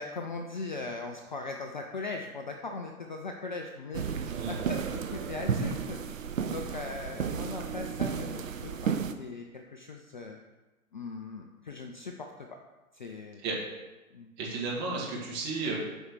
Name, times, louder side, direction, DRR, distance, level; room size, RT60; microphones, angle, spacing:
voice 1, 0.0-10.4 10.9-12.3 12.9-13.4 14.1-14.3, left 3 dB, 35° left, 3 dB, 0.4 m, -39 dB
sound 1, 3.9-9.1, right 7 dB, 65° right, 0.7 m, -33 dB
voice 2, 14.4-15.8, right 3 dB, 25° right, -4 dB, 2.0 m, -33 dB
7.8 x 4.5 x 4.7 m, 1.1 s
figure-of-eight pair, 120°, 44 cm